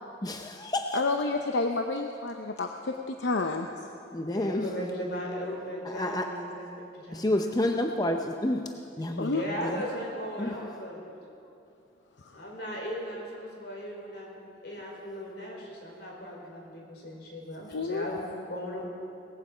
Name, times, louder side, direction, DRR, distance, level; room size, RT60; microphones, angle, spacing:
voice 1, 0.2-1.0 4.1-4.7 5.9-6.3 7.1-8.7 9.0-9.3 9.6-9.7 10.4-10.5, left 1 dB, 20° left, 4 dB, 0.6 m, -29 dB
voice 2, 0.9-3.7 9.2-9.4 17.7-18.0, left 3 dB, 85° left, 4 dB, 0.8 m, -29 dB
voice 3, 4.2-7.3 9.3-11.1 12.3-18.9, equal, 70° left, -2 dB, 4.5 m, -37 dB
19.0 x 15.0 x 5.1 m, 2.6 s
head